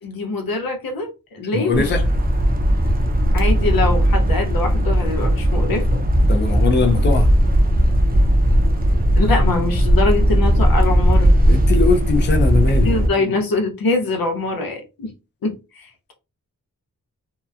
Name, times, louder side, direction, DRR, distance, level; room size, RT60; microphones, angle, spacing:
voice 1, 0.0-1.9 2.7-2.8 3.3-6.0 9.2-11.3 12.7-15.1 15.4-16.1, left 3 dB, 90° left, 0.7 m, -23 dB
voice 2, 1.5-2.1 6.3-7.3 11.5-13.0, left 4 dB, 35° left, 0.5 m, -20 dB
sound 1, 1.7-13.1, equal, 25° right, 0.6 m, -17 dB
2.8 x 2.2 x 2.4 m
wide cardioid pair, 70°, 34 cm